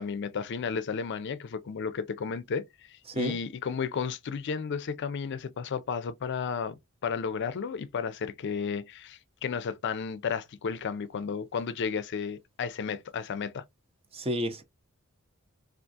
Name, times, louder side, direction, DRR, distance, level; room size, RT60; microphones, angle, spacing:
voice 1, 0.0-6.7 7.0-13.6, left 6 dB, 55° left, 0.4 m, -33 dB
voice 2, 14.1-14.6, equal, 25° right, 0.6 m, -30 dB
3.5 x 2.4 x 2.6 m
head